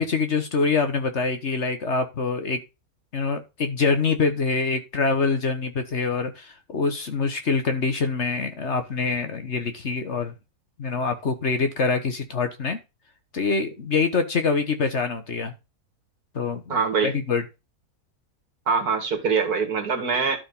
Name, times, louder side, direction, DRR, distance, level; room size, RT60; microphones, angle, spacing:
voice 1, 0.0-2.6 3.1-10.3 10.8-12.8 13.3-15.5 16.3-16.8 17.0-17.4, left 4 dB, 50° left, 1.4 m, -25 dB
voice 2, 16.7-17.1 18.7-20.4, right 5 dB, 75° right, 2.3 m, -23 dB
12.0 x 4.4 x 5.4 m
omnidirectional pair, 1.6 m